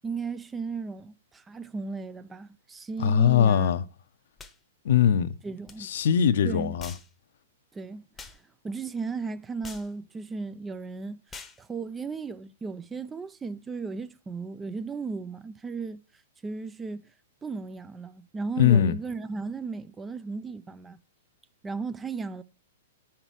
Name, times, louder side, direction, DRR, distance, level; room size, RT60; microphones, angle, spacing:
voice 1, 0.0-3.8 5.4-5.9 6.4-6.8 7.7-17.0 17.4-21.0 21.6-22.4, right 4 dB, 15° right, 0.5 m, -36 dB
voice 2, 3.0-3.8 4.8-5.3 5.8-6.9 18.6-19.0, left 8 dB, 65° left, 0.7 m, -21 dB
sound 1, 4.4-4.6 5.7-5.8 6.8-7.1 8.2-8.4 9.6-9.9 11.3-11.6, left 4 dB, 15° left, 0.9 m, -44 dB
8.9 x 5.9 x 4.6 m
hypercardioid pair, 115°, 0 cm